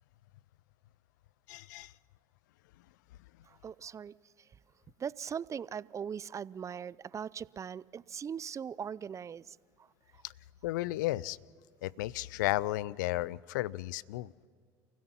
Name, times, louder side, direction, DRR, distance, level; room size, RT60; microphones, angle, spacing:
voice 1, 1.5-1.9 10.2-10.3 10.6-11.4 11.8-14.3, left 17 dB, 85° left, 23 dB, 0.4 m, -33 dB
voice 2, 3.5-4.5 5.0-9.9 10.1-10.2, right 7 dB, 30° right, 22 dB, 0.4 m, -40 dB
29.5 x 16.0 x 5.7 m, 2.1 s
hypercardioid pair, 75°, 10 cm